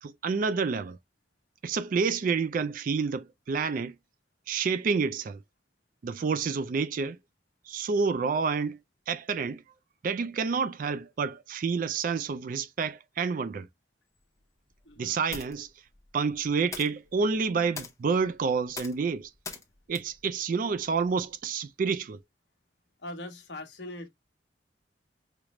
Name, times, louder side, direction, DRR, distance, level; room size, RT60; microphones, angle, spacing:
voice 1, 0.0-1.0 1.6-3.9 4.5-5.4 6.0-7.2 7.7-8.8 9.1-9.6 10.0-13.7 15.0-15.7 16.1-19.3 19.9-22.2, right 5 dB, 45° right, 0.3 m, -29 dB
sound 1, 14.1-21.4, left 4 dB, 15° left, 0.6 m, -46 dB
voice 2, 14.8-15.2 23.0-24.1, left 1 dB, 65° left, 1.0 m, -41 dB
4.9 x 2.0 x 2.9 m
head